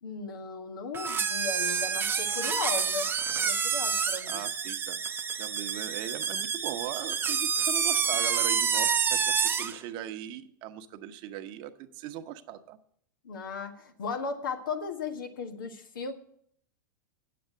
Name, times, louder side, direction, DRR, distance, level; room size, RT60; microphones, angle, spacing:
voice 1, 0.0-3.1 3.4-4.4 13.2-16.1, left 5 dB, 85° left, 5 dB, 1.6 m, -36 dB
sound 1, 0.9-9.8, right 6 dB, 20° right, 0.7 m, -28 dB
voice 2, 4.2-5.0 5.4-12.8, right 11 dB, 45° right, 9 dB, 0.9 m, -39 dB
8.7 x 7.7 x 8.2 m, 0.67 s
hypercardioid pair, 110°, 11 cm